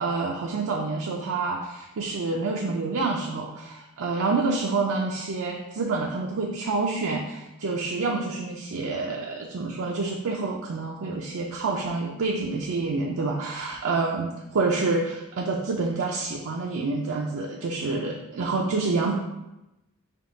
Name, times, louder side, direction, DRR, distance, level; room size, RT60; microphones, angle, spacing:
voice 1, 0.0-3.5 4.0-19.1, right 3 dB, 65° right, -1 dB, 0.4 m, -27 dB
5.2 x 2.3 x 3.8 m, 0.95 s
head